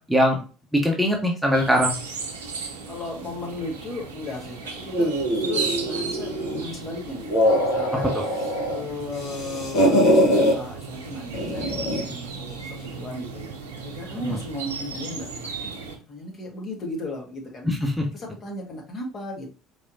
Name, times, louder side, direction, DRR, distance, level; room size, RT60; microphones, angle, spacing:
voice 1, 0.7-1.9 8.1-8.2 14.2-14.4 17.6-18.0, equal, ahead, 0 dB, 1.0 m, -21 dB
sound 1, 1.5-16.0, right 4 dB, 75° right, 0.7 m, -35 dB
voice 2, 2.9-15.7 16.1-17.7 18.1-19.5, left 2 dB, 40° left, -1 dB, 1.8 m, -36 dB
sound 2, 4.9-6.7 7.1-8.8 9.1-10.6 11.3-12.1, equal, 60° left, 1.3 m, -22 dB
4.8 x 3.4 x 2.6 m, 0.36 s
figure-of-eight pair, 60°, 0 cm